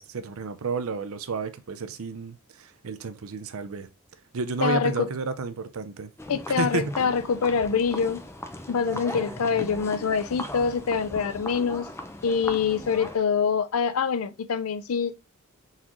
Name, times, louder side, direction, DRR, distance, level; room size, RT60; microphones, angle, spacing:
voice 1, 0.0-3.9 4.3-6.1 6.6-7.0 8.9-9.3, right 4 dB, 70° right, 0.5 m, -31 dB
voice 2, 4.6-5.1 6.3-8.2 8.7-11.9 12.2-15.1, left 6 dB, 75° left, 0.5 m, -25 dB
sound 1, 6.2-13.2, left 1 dB, 10° left, 0.6 m, -38 dB
4.1 x 3.7 x 2.9 m
head